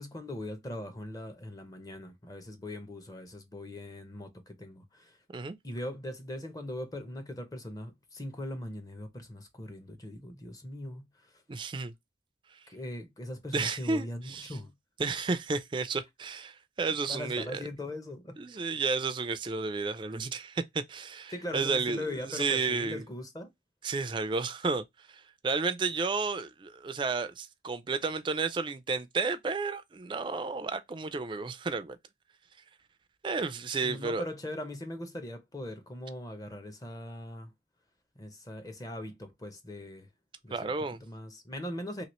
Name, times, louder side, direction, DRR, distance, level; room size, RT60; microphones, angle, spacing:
voice 1, 0.0-5.2 5.6-11.3 12.7-14.7 17.1-18.7 21.3-23.5 33.8-37.5 38.2-40.1 40.4-40.7 41.0-42.0, left 1 dB, 20° left, 0.6 m, -40 dB
voice 2, 11.5-11.9 13.5-14.6 15.0-17.6 18.4-23.0 23.8-32.0 33.2-34.2 40.5-41.0, right 4 dB, 25° right, 0.3 m, -32 dB
2.9 x 2.8 x 3.0 m
head